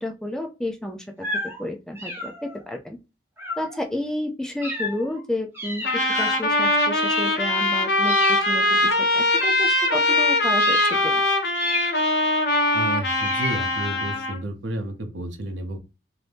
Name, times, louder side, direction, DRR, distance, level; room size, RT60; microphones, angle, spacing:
voice 1, 0.0-1.3 1.6-3.0 3.6-5.8 6.2-11.2, left 1 dB, 5° left, 3 dB, 0.3 m, -31 dB
sound 1, 1.2-1.6 2.0-2.6 3.4-3.8 4.6-5.2 5.5-6.4 6.9-7.7 8.0-8.7 9.3-10.2 10.6-11.1 11.5-12.3 13.1-14.0, left 1 dB, 10° right, 1.0 m, -32 dB
Trumpet, 5.8-14.4, left 2 dB, 60° left, 0.6 m, -22 dB
voice 2, 12.7-15.8, right 1 dB, 85° right, 6 dB, 0.7 m, -31 dB
2.7 x 2.6 x 3.3 m, 0.28 s
head